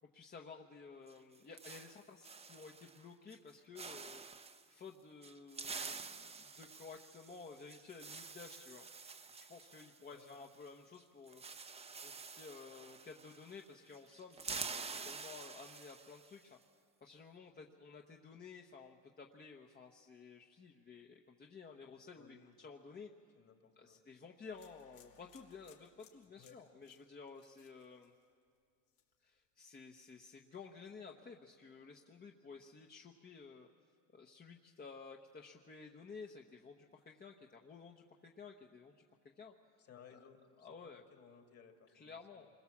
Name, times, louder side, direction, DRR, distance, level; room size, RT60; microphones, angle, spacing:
voice 1, 0.1-4.2 4.7-8.9 9.5-11.4 12.0-16.6 17.0-23.1 23.8-28.1 29.2-33.7 34.1-38.9 39.4-39.5 40.1-40.2 40.6-41.0 41.9-42.5, left 5 dB, 30° left, 1 dB, 1.1 m, -54 dB
sound 1, 1.1-3.0 3.3-3.5 3.8-4.6 5.2-10.7 10.9-11.0 11.3-13.7 13.9-16.3, right 4 dB, 20° right, 0.7 m, -48 dB
voice 2, 10.1-10.5 22.1-22.6 23.4-24.0 26.4-26.6 39.8-42.4, left 7 dB, 45° left, 5 dB, 2.4 m, -61 dB
sound 2, 24.5-28.6 28.9-29.3, left 9 dB, 85° left, 2.6 m, -67 dB
27.5 x 21.5 x 7.3 m, 2.2 s
cardioid pair, 130°, 34 cm